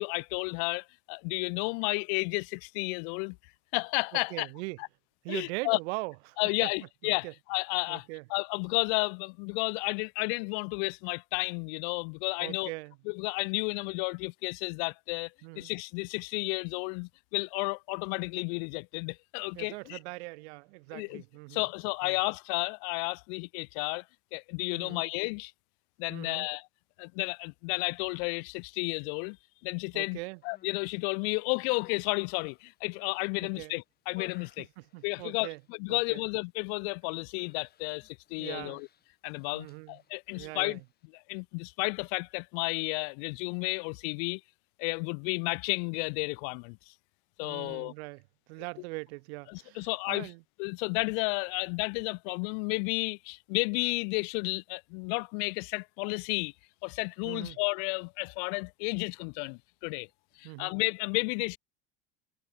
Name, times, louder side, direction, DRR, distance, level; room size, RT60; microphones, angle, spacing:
voice 1, 0.0-3.4 3.7-4.5 5.3-5.8 6.4-8.0 8.3-12.7 13.1-20.0 20.9-21.2 21.5-24.0 24.3-25.5 26.0-26.6 27.0-29.4 29.6-30.2 30.4-34.7 35.0-38.9 39.2-40.8 41.3-44.4 44.8-46.9 47.4-47.9 49.5-50.3 50.6-56.5 56.8-60.1 60.4-61.6, left 40 dB or more, 65° left, 1.4 m, -32 dB
voice 2, 4.1-4.8 5.2-6.7 7.0-7.3 7.9-8.2 12.4-13.0 15.4-15.7 19.5-21.6 22.0-22.2 24.7-25.1 26.1-26.5 29.9-30.4 33.4-33.8 34.6-35.6 35.9-36.2 38.4-38.8 39.5-40.0 40.4-40.8 47.4-48.2 48.5-50.4 57.2-57.6 60.4-60.8, right 26 dB, 75° right, 1.4 m, -41 dB
Human voice, 30.3-30.9 31.5-33.3 33.7-35.7 36.0-36.4 36.7-36.9 37.4-41.1, left 9 dB, 30° left, 3.2 m, -58 dB
supercardioid pair, 135°, 33 cm